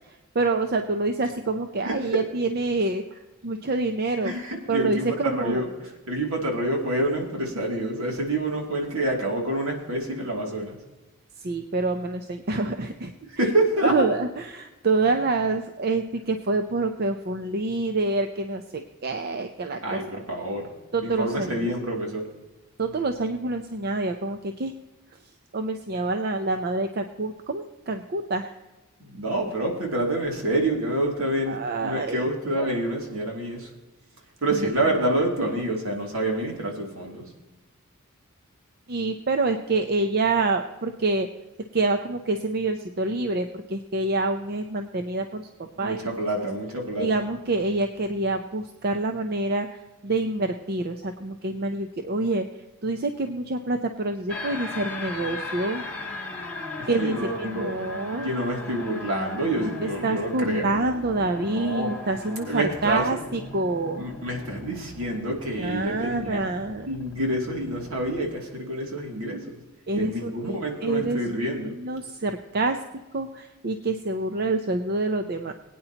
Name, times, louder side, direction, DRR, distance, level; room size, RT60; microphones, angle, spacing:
voice 1, 0.0-4.3 4.7-5.6 11.4-13.1 13.8-20.0 20.9-21.7 22.8-24.7 25.5-28.5 31.5-32.6 34.5-34.9 38.9-41.3 41.7-46.0 47.0-55.8 56.9-58.3 59.6-64.0 65.6-66.9 69.9-71.2 71.8-72.8 73.1-75.5, right 2 dB, 45° right, 7 dB, 0.7 m, -27 dB
voice 2, 4.2-10.8 13.4-14.1 19.8-20.7 21.0-22.3 29.0-33.7 34.4-37.3 45.8-47.1 56.8-57.7 58.1-60.7 61.5-62.0 62.4-63.1 64.0-66.4 66.9-69.6 69.9-71.8, right 1 dB, 70° right, 0 dB, 2.7 m, -27 dB
sound 1, 54.3-68.3, left 2 dB, 10° left, 2.2 m, -38 dB
21.5 x 9.3 x 2.9 m, 1.1 s
head